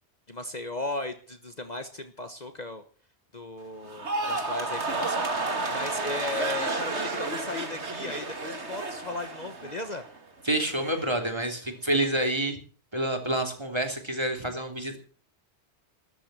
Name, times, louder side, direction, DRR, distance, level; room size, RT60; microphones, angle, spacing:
voice 1, 0.3-2.8 3.3-10.0, left 2 dB, 40° left, 8 dB, 1.4 m, -36 dB
sound 1, 3.9-10.2 10.5-11.0, right 3 dB, 80° right, 2.6 m, -31 dB
voice 2, 10.4-12.6 12.9-15.0, right 1 dB, 25° right, 4 dB, 3.3 m, -28 dB
13.0 x 11.5 x 7.6 m, 0.41 s
omnidirectional pair, 1.1 m